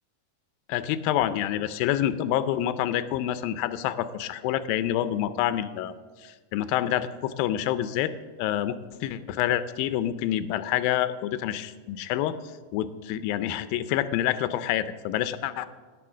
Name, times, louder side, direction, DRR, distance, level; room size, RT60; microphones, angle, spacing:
voice 1, 0.7-5.9 6.2-8.1 8.4-8.8 9.0-12.4 12.7-15.7, left 12 dB, 85° left, 12 dB, 2.4 m, -27 dB
17.5 x 6.7 x 6.2 m, 1.4 s
omnidirectional pair, 4.1 m